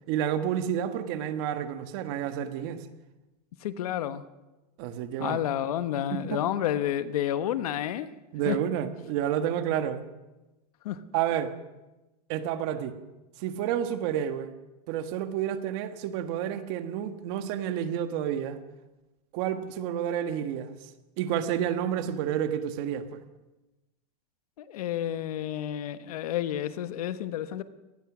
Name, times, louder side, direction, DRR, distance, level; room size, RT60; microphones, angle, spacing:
voice 1, 0.1-2.8 4.8-5.4 6.1-6.4 8.3-10.0 11.1-11.5 12.3-13.0 13.4-14.5 14.9-18.6 19.3-20.7 21.2-23.2, right 10 dB, 35° right, 9 dB, 1.5 m, -30 dB
voice 2, 3.6-4.2 5.2-8.1 8.5-8.6 10.8-11.0 24.6-27.6, left 11 dB, 60° left, 12 dB, 1.3 m, -30 dB
25.0 x 19.5 x 6.2 m, 1.1 s
supercardioid pair, 170°, 21 cm